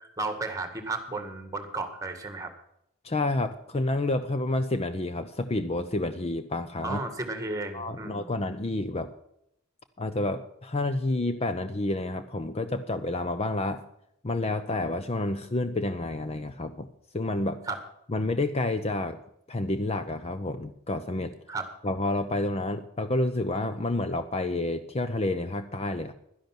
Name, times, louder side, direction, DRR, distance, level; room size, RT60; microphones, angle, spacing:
voice 1, 0.0-2.5 6.8-8.3 17.7-17.8 21.5-21.7, right 3 dB, 15° right, 7 dB, 1.9 m, -33 dB
voice 2, 3.0-7.0 7.7-9.1 10.0-13.8 14.2-16.9 17.1-17.6 18.1-19.2 19.5-21.3 21.8-26.1, left 2 dB, 30° left, 10 dB, 0.6 m, -29 dB
12.0 x 11.0 x 6.1 m, 0.76 s
head